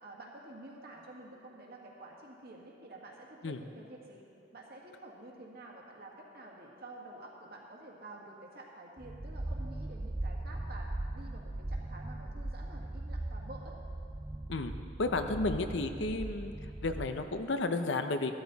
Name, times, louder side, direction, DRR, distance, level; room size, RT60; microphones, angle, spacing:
voice 1, 0.0-4.2 4.5-13.8, right 2 dB, 55° right, -1 dB, 1.9 m, -50 dB
sound 1, 9.0-17.4, right 1 dB, 10° right, 0.3 m, -39 dB
voice 2, 15.0-16.5 16.8-18.3, left 2 dB, 70° left, 7 dB, 0.7 m, -32 dB
14.0 x 13.0 x 4.1 m, 2.6 s
head